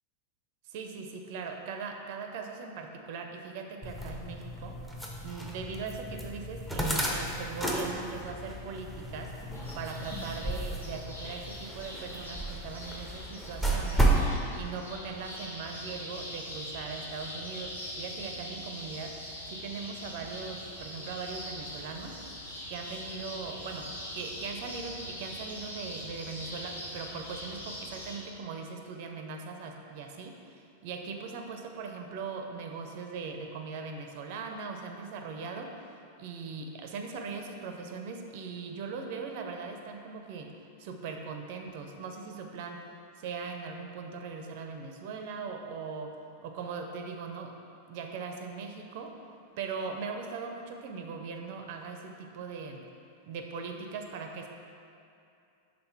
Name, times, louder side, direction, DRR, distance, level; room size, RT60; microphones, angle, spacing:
voice 1, 0.7-4.8 5.2-9.3 9.7-19.1 19.5-22.2 22.7-23.9 24.1-35.9 36.2-40.5 40.8-42.9 43.2-47.5 47.9-49.1 49.6-52.8 53.3-54.5, right 5 dB, 50° right, 4 dB, 0.5 m, -40 dB
sound 1, 3.8-14.3, right 1 dB, 5° left, 0.7 m, -32 dB
sound 2, 9.5-28.2, equal, 80° left, 1.3 m, -42 dB
5.6 x 3.8 x 4.3 m, 2.6 s
figure-of-eight pair, 90°, 0 cm